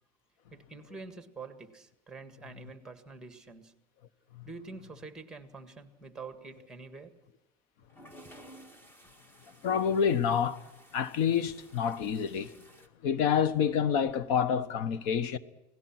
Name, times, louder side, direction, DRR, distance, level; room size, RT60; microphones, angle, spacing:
voice 1, 0.5-3.7 4.4-7.2 8.2-8.3, right 4 dB, 5° right, 1.7 m, -46 dB
sound 1, 7.9-12.9, right 1 dB, 15° left, 2.0 m, -55 dB
voice 2, 9.6-12.6 13.0-15.4, left 7 dB, 80° left, 1.3 m, -28 dB
29.5 x 18.0 x 6.1 m
cardioid pair, 160°, 13 cm